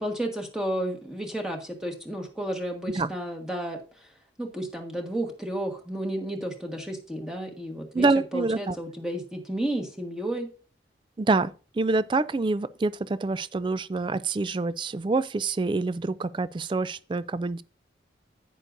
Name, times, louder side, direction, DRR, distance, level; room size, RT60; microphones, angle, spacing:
voice 1, 0.0-4.1 4.4-10.5, right 1 dB, 5° right, 1.4 m, -32 dB
voice 2, 7.9-8.8 11.2-17.6, right 3 dB, 25° right, 0.3 m, -26 dB
11.0 x 9.1 x 2.6 m
head